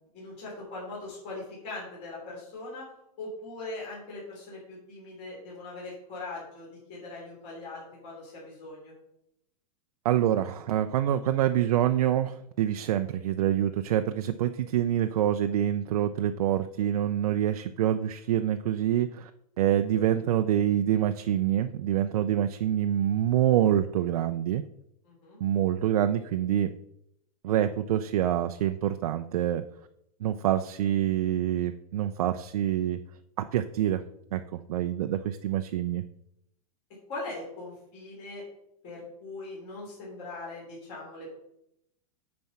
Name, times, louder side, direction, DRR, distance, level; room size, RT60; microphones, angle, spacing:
voice 1, 0.0-2.8 3.2-8.9 25.0-25.4 37.1-38.4 38.8-41.4, left 2 dB, 30° left, -5 dB, 3.1 m, -41 dB
voice 2, 10.0-19.3 19.6-24.6 25.4-26.7 27.4-29.6 30.2-33.0 33.4-34.0 34.3-36.0, right 11 dB, 65° right, 8 dB, 0.5 m, -26 dB
9.3 x 4.4 x 5.7 m, 0.79 s
supercardioid pair, 175°, 20 cm